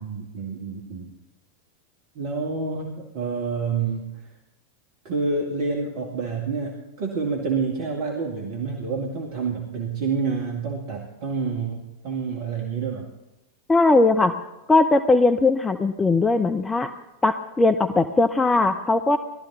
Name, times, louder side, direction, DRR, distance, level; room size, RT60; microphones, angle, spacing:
voice 1, 0.0-1.1 2.2-4.3 5.0-13.1, right 4 dB, 45° right, 0 dB, 2.1 m, -28 dB
voice 2, 13.7-14.3 14.7-16.9 17.2-19.2, left 3 dB, 10° left, 7 dB, 0.7 m, -19 dB
19.5 x 13.0 x 4.1 m, 0.99 s
figure-of-eight pair, 90°, 0 cm